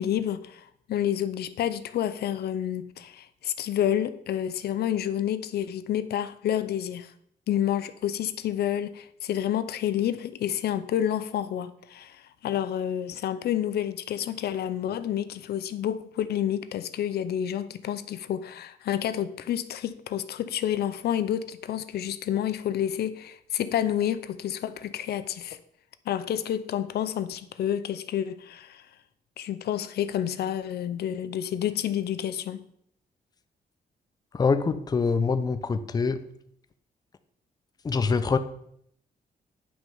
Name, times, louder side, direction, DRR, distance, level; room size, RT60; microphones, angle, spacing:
voice 1, 0.0-7.1 7.5-25.6 26.1-28.8 29.4-32.6, left 10 dB, 90° left, 0.6 m, -29 dB
voice 2, 34.3-36.2 37.8-38.4, left 4 dB, 25° left, 0.6 m, -24 dB
9.8 x 6.0 x 5.5 m
wide cardioid pair, 150°, 16 cm